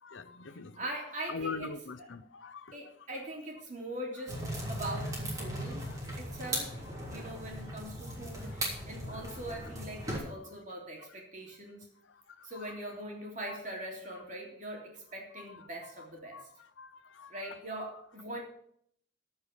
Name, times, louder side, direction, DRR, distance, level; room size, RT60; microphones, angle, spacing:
voice 1, 0.0-0.8 1.3-2.7 8.5-8.6 12.4-12.5 16.3-16.5 16.8-17.3, left 4 dB, 85° left, 12 dB, 0.8 m, -42 dB
voice 2, 0.7-1.7 2.0-2.1 2.7-5.8 6.2-11.9 12.4-16.4 17.3-18.4, right 1 dB, 40° right, -1 dB, 3.3 m, -42 dB
sound 1, 4.3-10.2, right 1 dB, 20° right, 3.3 m, -38 dB
14.5 x 5.6 x 7.2 m, 0.68 s
head